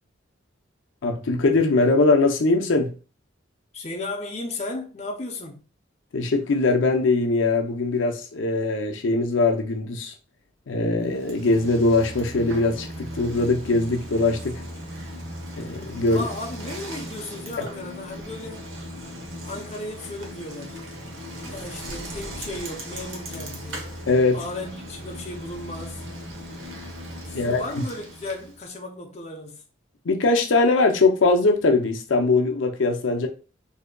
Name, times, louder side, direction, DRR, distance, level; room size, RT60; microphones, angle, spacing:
voice 1, 1.0-2.9 6.1-10.1 10.7-14.6 15.6-16.2 17.6-17.7 24.1-24.4 27.3-27.6 30.1-33.3, left 3 dB, 80° left, 0.5 m, -21 dB
voice 2, 3.7-5.6 16.1-18.7 19.4-20.8 21.4-23.9 24.3-26.0 27.3-29.6, left 2 dB, 35° left, 0.5 m, -35 dB
Bicycle, 11.1-28.6, equal, 80° right, 0.9 m, -38 dB
3.7 x 2.7 x 2.2 m
head